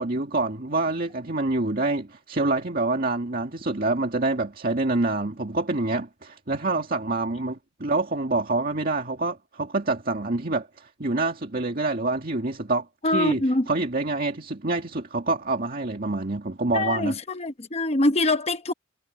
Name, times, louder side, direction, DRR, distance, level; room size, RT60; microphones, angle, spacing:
voice 1, 0.0-12.9 13.1-13.4 13.7-17.2, right 2 dB, 45° right, 2.1 m, -26 dB
voice 2, 13.0-13.7 16.7-18.7, left 2 dB, 30° left, 0.9 m, -24 dB
head